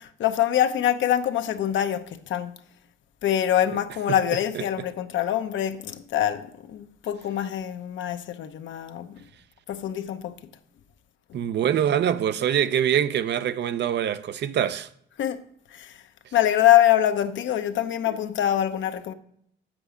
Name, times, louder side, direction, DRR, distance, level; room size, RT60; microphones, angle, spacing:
voice 1, 0.2-2.5 3.2-9.2 9.7-10.3 11.3-11.4 15.2-15.4 15.7-16.0 16.3-19.1, left 11 dB, 70° left, 0.8 m, -24 dB
voice 2, 11.3-14.9, right 9 dB, 60° right, 0.6 m, -24 dB
8.0 x 7.5 x 5.0 m
cardioid pair, 90°, 20 cm